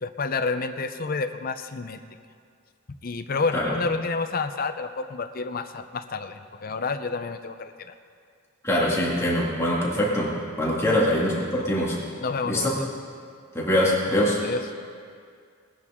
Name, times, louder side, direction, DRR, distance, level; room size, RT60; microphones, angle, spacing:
voice 1, 0.0-2.0 3.0-7.7 10.9-11.0 12.2-12.7 14.4-14.6, left 4 dB, 45° left, 8 dB, 0.6 m, -29 dB
voice 2, 8.6-12.0 12.4-12.7 13.5-14.4, left 1 dB, 15° left, -5 dB, 2.2 m, -23 dB
20.0 x 10.5 x 3.7 m, 2.2 s
head